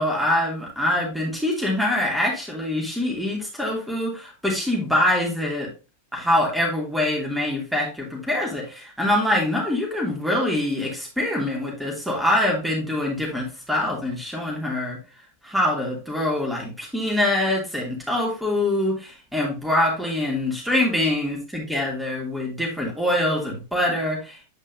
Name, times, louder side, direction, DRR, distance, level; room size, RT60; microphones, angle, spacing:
voice 1, 0.0-5.7 6.1-15.0 15.4-24.4, left 1 dB, ahead, -2 dB, 2.9 m, -24 dB
8.8 x 5.2 x 2.8 m, 0.29 s
figure-of-eight pair, 90°, 0 cm